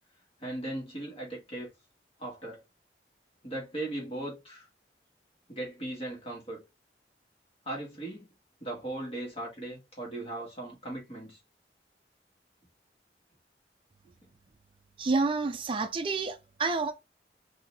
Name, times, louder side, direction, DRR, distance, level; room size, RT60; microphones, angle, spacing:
voice 1, 0.4-1.7 2.2-2.6 3.4-4.7 5.5-6.6 7.7-8.3 8.6-11.4, right 1 dB, 35° left, 1.8 m, -38 dB
voice 2, 15.0-16.9, right 3 dB, 30° right, 0.4 m, -29 dB
4.1 x 2.7 x 2.6 m
head